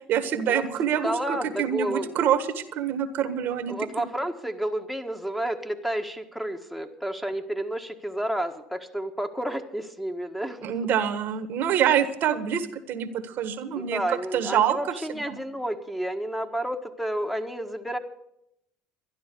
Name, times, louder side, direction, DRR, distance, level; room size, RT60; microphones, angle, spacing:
voice 1, 0.1-4.1 10.6-14.8 15.1-15.4, right 9 dB, 55° right, 11 dB, 1.5 m, -26 dB
voice 2, 1.0-2.2 3.7-10.7 13.7-18.0, right 1 dB, ahead, 5 dB, 1.6 m, -31 dB
12.5 x 11.0 x 6.9 m, 0.81 s
hypercardioid pair, 70°, 4 cm